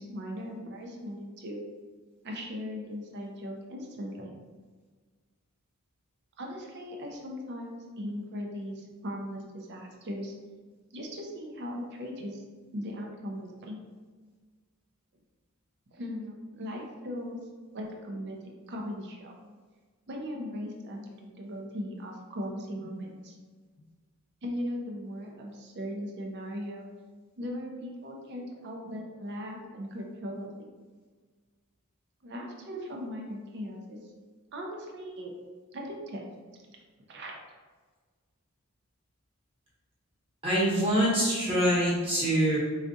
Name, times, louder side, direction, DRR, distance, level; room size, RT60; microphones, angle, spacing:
voice 1, 0.0-1.6 2.2-4.4 6.4-10.3 10.9-12.4 12.7-13.8 15.9-17.4 17.7-19.3 20.1-23.3 24.4-26.9 27.4-30.7 32.2-34.0 34.5-35.3 35.7-36.2 37.1-37.4, equal, 55° right, 1 dB, 0.5 m, -38 dB
voice 2, 40.4-42.6, equal, 25° right, -6 dB, 1.1 m, -25 dB
4.3 x 2.4 x 2.6 m, 1.4 s
head